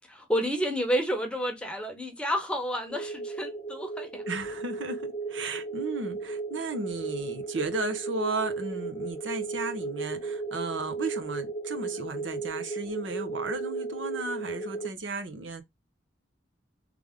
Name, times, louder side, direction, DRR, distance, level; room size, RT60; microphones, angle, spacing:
voice 1, 0.1-4.2, equal, 5° left, 0.9 m, -30 dB
sound 1, 2.9-14.9, right 3 dB, 25° left, 0.6 m, -35 dB
voice 2, 4.3-15.6, right 3 dB, 80° right, 0.9 m, -34 dB
3.4 x 3.4 x 3.6 m
head